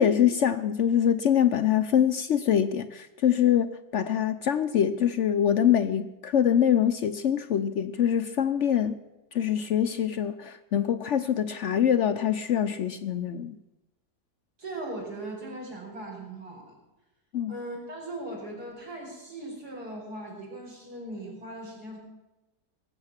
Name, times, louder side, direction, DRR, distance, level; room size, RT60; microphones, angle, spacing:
voice 1, 0.0-8.9 9.3-13.6 17.3-17.5, left 9 dB, 60° left, 10 dB, 0.8 m, -24 dB
voice 2, 14.6-16.8 17.5-22.0, right 1 dB, 80° right, -2 dB, 5.6 m, -39 dB
18.5 x 7.8 x 7.3 m, 1.0 s
omnidirectional pair, 1.6 m